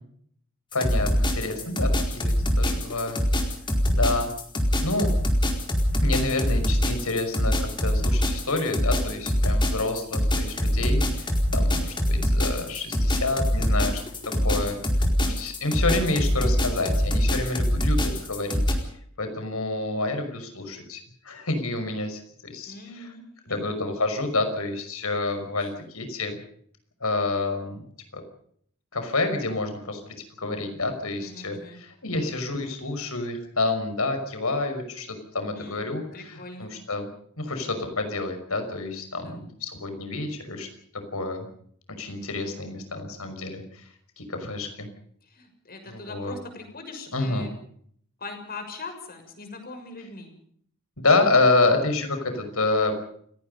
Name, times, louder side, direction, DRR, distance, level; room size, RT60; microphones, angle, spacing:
voice 1, 0.7-3.2 3.9-4.3 4.8-5.1 6.0-14.0 14.4-14.8 15.2-18.8 19.2-23.1 23.5-26.4 27.0-27.8 28.1-28.2 28.9-30.0 30.4-35.1 35.3-37.1 37.4-40.7 41.1-41.5 42.0-43.6 44.2-44.9 45.9-46.3 47.1-47.5 51.0-52.9, left 2 dB, 75° left, 7 dB, 5.8 m, -28 dB
sound 1, 0.7-18.7, equal, 20° left, 4.5 m, -23 dB
voice 2, 14.3-14.9 22.7-23.2 23.5-23.7 31.2-31.8 35.5-36.7 39.2-39.4 45.3-47.5 48.2-50.3, left 3 dB, 45° left, 6 dB, 6.5 m, -41 dB
29.0 x 18.0 x 5.5 m, 0.63 s
head